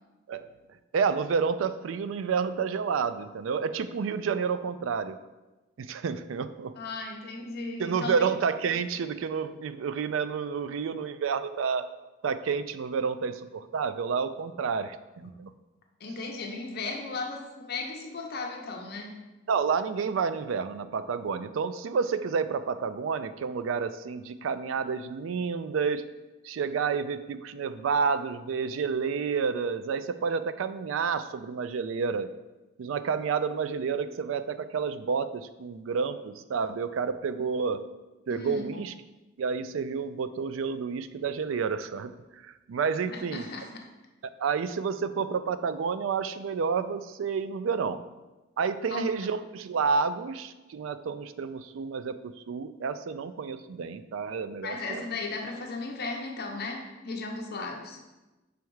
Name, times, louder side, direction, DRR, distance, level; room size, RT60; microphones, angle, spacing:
voice 1, 0.9-5.2 5.8-6.8 7.8-11.9 12.2-15.5 19.5-26.1 26.4-32.3 32.8-37.9 38.3-38.9 39.4-43.5 44.4-48.0 48.6-55.0, right 5 dB, 90° right, 12 dB, 0.4 m, -30 dB
voice 2, 6.8-8.3 16.0-19.2 38.3-38.8 43.1-43.9 48.9-49.3 54.6-58.0, left 3 dB, 55° left, 1 dB, 0.7 m, -36 dB
6.3 x 3.5 x 4.6 m, 1.1 s
head